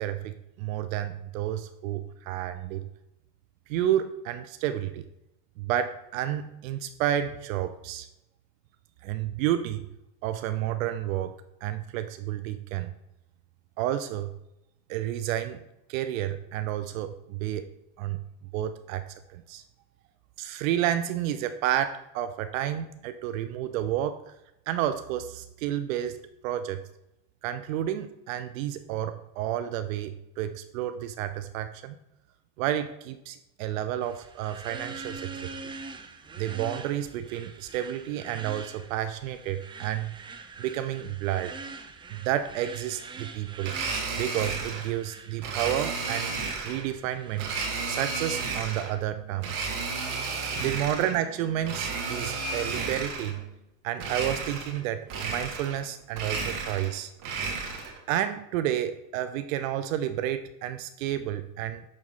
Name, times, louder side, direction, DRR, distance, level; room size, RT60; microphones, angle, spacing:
voice 1, 0.0-2.9 3.7-5.1 5.6-8.1 9.0-9.9 10.2-12.9 13.8-14.3 14.9-15.6 15.9-17.7 18.0-18.2 18.5-19.0 19.3-19.6 20.4-24.3 24.7-26.2 26.4-26.8 27.4-32.0 32.6-35.3 35.6-35.7 36.4-40.2 40.6-41.5 42.1-43.7 44.2-46.3 46.6-47.5 47.9-49.7 50.6-53.5 53.8-57.1 58.1-61.8, right 11 dB, 75° right, 10 dB, 0.6 m, -30 dB
sound 1, 34.0-47.8, right 4 dB, 15° right, 0.4 m, -44 dB
Domestic sounds home sounds, 43.6-44.9 45.4-46.9 47.4-48.9 49.4-51.2 51.6-53.4 54.0-54.8 55.1-55.8 56.1-58.0, right 4 dB, 50° right, 1.8 m, -32 dB
6.5 x 3.5 x 5.5 m, 0.88 s
supercardioid pair, 110°, 40 cm